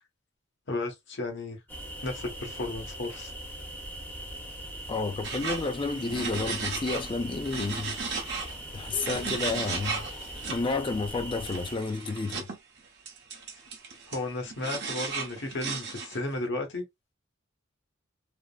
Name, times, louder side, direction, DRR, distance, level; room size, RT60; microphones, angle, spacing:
voice 1, 0.7-1.6 2.0-3.3 14.1-16.8, left 2 dB, 60° left, 1.0 m, -34 dB
sound 1, 1.7-11.8, right 1 dB, 10° left, 0.9 m, -41 dB
voice 2, 4.9-8.0 8.7-10.1 10.5-12.4, left 3 dB, 25° left, 0.4 m, -31 dB
sound 2, 5.2-7.1 7.4-10.6 11.4-12.6 13.1-16.3, right 4 dB, 55° right, 0.8 m, -36 dB
3.4 x 2.0 x 2.2 m
head